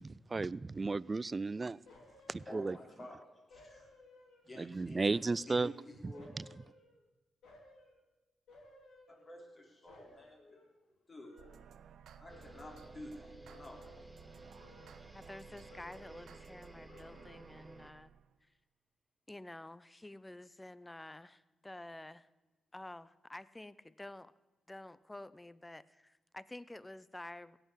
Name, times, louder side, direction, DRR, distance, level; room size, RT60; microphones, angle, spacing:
voice 1, 0.0-1.8 2.3-2.8 4.6-5.7 6.0-6.4, right 3 dB, 35° right, 0.3 m, -34 dB
sound 1, 1.9-3.1 3.5-4.6 4.9-7.1 7.4-8.0 8.5-9.6 9.9-12.0 12.3-13.0 13.4-14.2 14.5-15.4 15.7-16.4 16.8-17.6 18.0-18.1, left 2 dB, 80° left, 2.8 m, -60 dB
voice 2, 2.3-3.9 4.5-5.0 5.5-6.3 9.1-10.6 11.1-11.4 12.2-13.9, left 1 dB, 35° left, 3.7 m, -51 dB
sound 2, 11.4-18.4, right 8 dB, 75° right, 0.6 m, -57 dB
sound 3, 12.3-17.9, right 1 dB, 10° right, 1.1 m, -55 dB
voice 3, 15.1-18.1 19.3-22.3 22.7-24.3 24.7-27.6, left 1 dB, 15° left, 0.6 m, -50 dB
16.5 x 5.8 x 8.1 m
cardioid pair, 60°, 0 cm